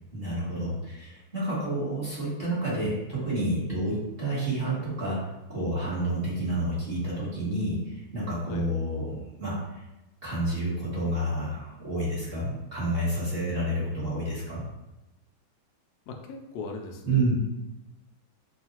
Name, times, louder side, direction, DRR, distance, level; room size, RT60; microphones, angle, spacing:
voice 1, 0.1-5.2 5.5-9.6 10.2-14.6 17.0-17.4, right 1 dB, 30° right, -8 dB, 1.2 m, -29 dB
voice 2, 16.1-17.3, left 3 dB, 80° left, 2 dB, 0.8 m, -39 dB
5.3 x 2.5 x 2.9 m, 0.98 s
omnidirectional pair, 2.3 m